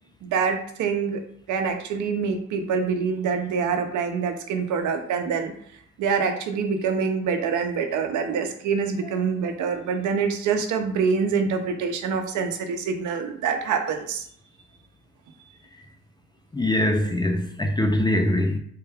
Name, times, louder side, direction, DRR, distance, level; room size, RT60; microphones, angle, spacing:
voice 1, 0.2-1.2 1.5-5.5 6.0-14.2, right 5 dB, 75° right, 0.7 m, -25 dB
voice 2, 16.5-18.6, left 1 dB, 15° left, 0.3 m, -22 dB
3.7 x 2.2 x 3.4 m
cardioid pair, 90°, 30 cm